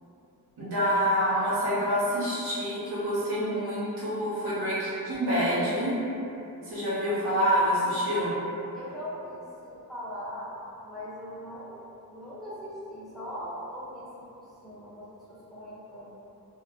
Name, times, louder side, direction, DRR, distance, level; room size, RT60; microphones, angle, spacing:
voice 1, 0.6-6.0 6.6-8.4, equal, 80° right, -9 dB, 0.9 m, -27 dB
voice 2, 8.7-16.1, equal, ahead, -10 dB, 0.8 m, -40 dB
2.3 x 2.0 x 3.5 m, 2.8 s
wide cardioid pair, 85°, 37 cm